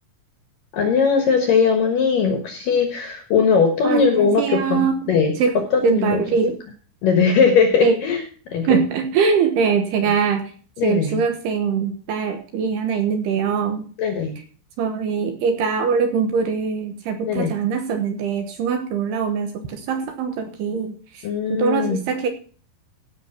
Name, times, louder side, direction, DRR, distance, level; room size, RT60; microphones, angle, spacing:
voice 1, 0.7-6.3 7.0-8.2 8.5-8.8 10.8-11.2 14.0-14.4 17.2-17.5 21.2-22.0, left 5 dB, 65° left, 5 dB, 2.2 m, -19 dB
voice 2, 3.8-5.1 5.4-5.5 5.8-6.6 7.8-8.0 8.6-10.5 10.8-13.9 14.8-22.3, right 6 dB, 70° right, 6 dB, 2.7 m, -22 dB
16.0 x 6.2 x 5.7 m, 0.42 s
omnidirectional pair, 5.7 m